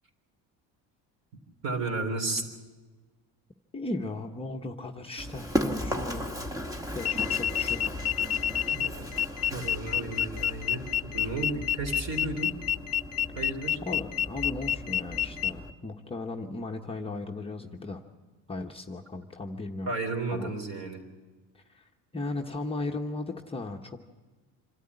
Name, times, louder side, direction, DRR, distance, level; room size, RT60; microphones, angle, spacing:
voice 1, 1.6-2.4 8.7-9.2 9.5-12.6 13.4-13.8 19.9-21.0, right 3 dB, 45° right, 4 dB, 3.7 m, -33 dB
voice 2, 3.7-6.4 6.9-8.0 11.2-11.3 13.8-18.0 18.5-19.9 20.4-20.5 21.5-24.0, left 2 dB, 15° left, 1 dB, 0.9 m, -36 dB
Run, 5.2-15.7, equal, 10° right, 1.3 m, -36 dB
sound 1, 7.0-15.5, left 11 dB, 40° left, 0.6 m, -28 dB
26.5 x 13.0 x 9.6 m, 1.3 s
cardioid pair, 145°, 37 cm